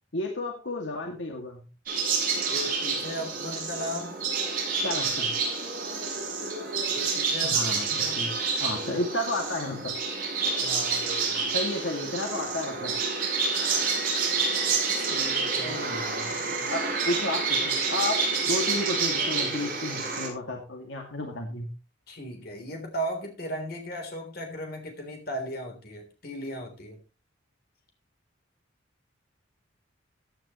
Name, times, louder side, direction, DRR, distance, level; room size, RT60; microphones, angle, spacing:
voice 1, 0.1-1.7 4.8-5.3 7.4-10.0 11.5-12.9 15.7-21.7, left 2 dB, 75° left, 2 dB, 2.2 m, -32 dB
sound 1, 1.9-20.3, right 4 dB, 45° right, 6.8 m, -28 dB
voice 2, 2.5-4.2 6.9-8.3 10.6-11.5 15.0-15.8 22.1-27.0, equal, 50° left, 4 dB, 3.5 m, -37 dB
15.0 x 9.4 x 3.1 m, 0.33 s
head